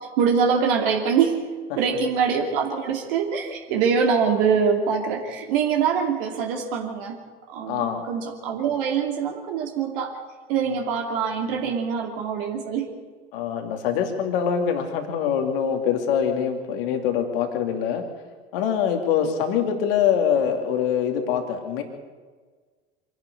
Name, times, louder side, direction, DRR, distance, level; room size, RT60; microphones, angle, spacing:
voice 1, 0.2-1.4 1.8-10.2 10.5-12.9, right 6 dB, 55° right, 1 dB, 2.7 m, -24 dB
voice 2, 7.7-8.0 13.3-18.0 18.5-21.8, left 8 dB, 60° left, 5 dB, 2.9 m, -24 dB
25.0 x 11.0 x 9.8 m, 1.5 s
figure-of-eight pair, 75°, 31 cm